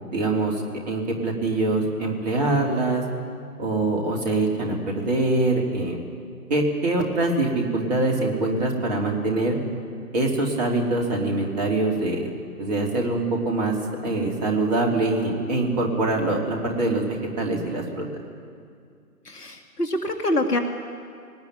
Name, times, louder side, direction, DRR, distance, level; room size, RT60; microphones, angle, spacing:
voice 1, 0.1-3.0 3.6-6.0 6.5-9.6 10.1-12.3 12.6-13.7 14.0-18.0, right 2 dB, 25° right, 0 dB, 3.2 m, -24 dB
voice 2, 19.3-20.6, left 1 dB, 75° left, 4 dB, 2.2 m, -25 dB
21.0 x 19.0 x 9.4 m, 2.2 s
figure-of-eight pair, 145°, 47 cm